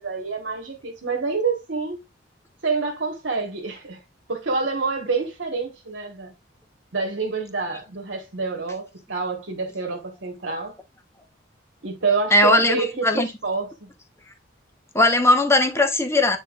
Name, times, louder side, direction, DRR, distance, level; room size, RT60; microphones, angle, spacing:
voice 1, 0.0-2.0 2.6-4.0 4.3-6.3 6.9-10.8 11.8-13.9, right 4 dB, 70° right, 1.4 m, -27 dB
voice 2, 12.3-13.3 14.9-16.4, left 1 dB, 15° left, 0.9 m, -18 dB
9.1 x 4.2 x 2.4 m
head